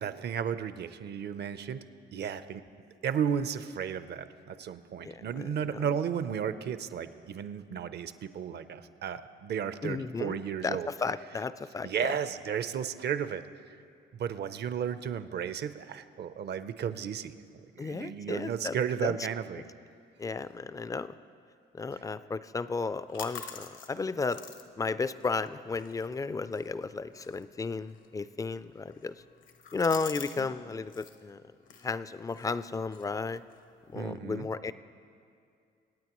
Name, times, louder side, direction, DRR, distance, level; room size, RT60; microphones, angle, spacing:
voice 1, 0.0-1.8 2.1-2.6 3.0-10.9 11.8-13.4 14.1-17.4 17.8-19.6 30.4-30.5 33.9-34.5, right 8 dB, 55° right, 12 dB, 0.6 m, -34 dB
voice 2, 5.0-5.8 9.8-12.1 17.8-19.2 20.2-21.1 21.7-24.4 24.8-29.1 29.7-31.4 31.8-33.4 33.9-34.7, left 4 dB, 15° left, 15 dB, 0.3 m, -34 dB
sound 1, 22.7-30.4 30.7-31.2 31.6-33.9, left 7 dB, 80° left, 1.1 m, -49 dB
26.0 x 9.1 x 3.0 m, 2.4 s
cardioid pair, 90°, 20 cm